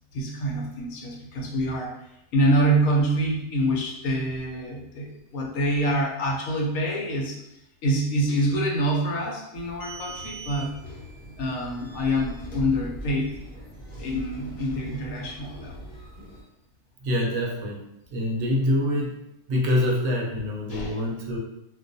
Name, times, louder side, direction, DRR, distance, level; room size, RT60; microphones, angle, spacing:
voice 1, 0.1-2.0 2.3-7.4 7.8-10.8 11.4-13.3 14.0-15.9 20.7-21.0, right 1 dB, 80° left, -1 dB, 1.0 m, -26 dB
sound 1, 9.5-16.4, right 2 dB, 50° left, 0.9 m, -40 dB
voice 2, 17.0-17.8 18.1-19.1 19.5-21.4, left 1 dB, 70° right, -2 dB, 0.8 m, -25 dB
2.3 x 2.2 x 2.5 m, 0.84 s
omnidirectional pair, 1.4 m